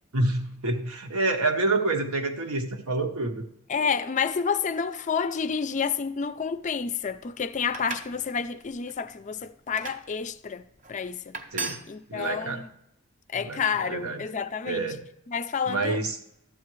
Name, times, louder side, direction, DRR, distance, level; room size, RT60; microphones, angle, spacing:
voice 1, 0.1-3.4 11.5-11.8 12.1-12.6 13.4-13.6 13.9-14.2 14.6-15.0 15.7-16.2, right 2 dB, 85° right, 1.1 m, -27 dB
voice 2, 3.7-10.6 10.9-11.3 11.9-12.7 13.3-14.9 15.3-16.0, left 6 dB, 35° left, 0.4 m, -29 dB
sound 1, 7.6-8.2 8.6-9.0 9.8-10.0 10.8-10.9 11.3-11.8, right 4 dB, 35° right, 0.8 m, -35 dB
12.5 x 8.3 x 3.1 m
head